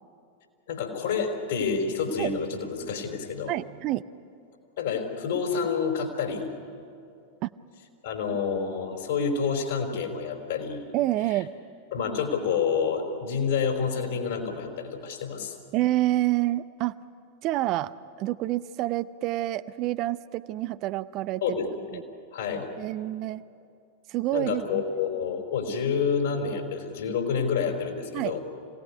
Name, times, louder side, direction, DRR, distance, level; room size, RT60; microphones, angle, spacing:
voice 1, 0.7-3.5 4.8-6.5 8.0-10.8 11.9-15.5 21.4-21.7 22.3-22.7 24.3-28.4, left 6 dB, 60° left, 3 dB, 4.5 m, -28 dB
voice 2, 3.5-4.0 7.4-7.5 10.9-11.5 15.7-16.9 17.4-17.9 18.2-21.6 21.9-22.0 22.8-23.4 24.1-24.8 28.1-28.4, right 15 dB, 40° right, 14 dB, 0.6 m, -28 dB
26.5 x 18.0 x 9.7 m, 2.5 s
figure-of-eight pair, 90°, 0 cm